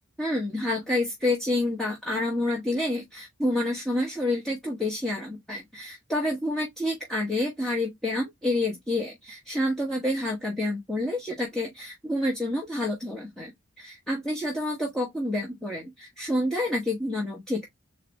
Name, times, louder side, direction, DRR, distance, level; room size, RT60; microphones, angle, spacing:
voice 1, 0.2-13.5 13.8-17.7, left 1 dB, ahead, 0.9 m, -28 dB
3.9 x 2.7 x 3.5 m
head